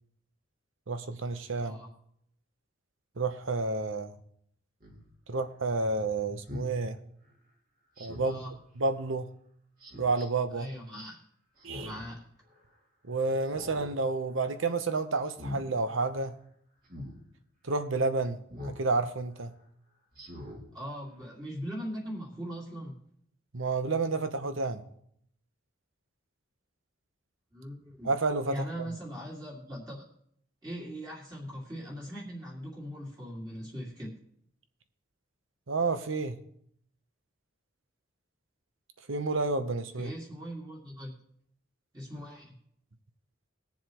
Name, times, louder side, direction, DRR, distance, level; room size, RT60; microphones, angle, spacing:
voice 1, 0.9-1.8 3.2-4.2 5.3-7.0 8.0-8.4 8.8-9.3 10.0-10.7 11.6-11.9 13.1-16.3 17.6-18.4 18.8-19.5 23.5-24.8 28.0-28.9 35.7-36.4 39.1-40.1, right 3 dB, 70° right, 0.9 m, -30 dB
Speech synthesizer, 4.8-5.0 6.5-6.7 8.0-8.4 9.8-10.3 11.6-12.1 12.5-12.6 13.4-13.9 14.3-14.6 15.2-15.6 16.9-17.1 18.5-18.8 19.3-19.4 20.1-20.6 21.1-21.2, left 1 dB, 45° right, 2.4 m, -42 dB
voice 2, 8.2-8.5 10.5-11.2 11.8-12.2 20.7-23.0 27.5-28.1 28.5-30.0 30.6-34.2 40.0-41.1 41.9-42.5, equal, 20° right, 2.2 m, -40 dB
21.0 x 7.2 x 3.0 m
head